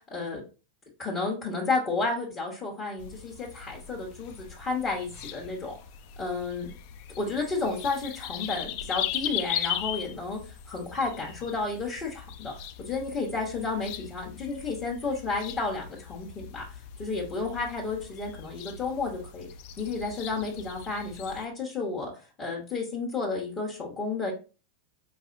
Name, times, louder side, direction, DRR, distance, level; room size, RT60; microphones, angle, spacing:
voice 1, 0.1-0.4 1.0-5.8 6.2-6.7 7.2-10.4 10.7-12.5 12.9-16.6 17.0-19.5 19.8-22.1 22.4-24.3, left 3 dB, 35° left, -3 dB, 1.0 m, -31 dB
sound 1, 3.0-21.5, left 11 dB, 55° left, 0.3 m, -39 dB
4.2 x 2.7 x 2.5 m, 0.34 s
hypercardioid pair, 90°, 0 cm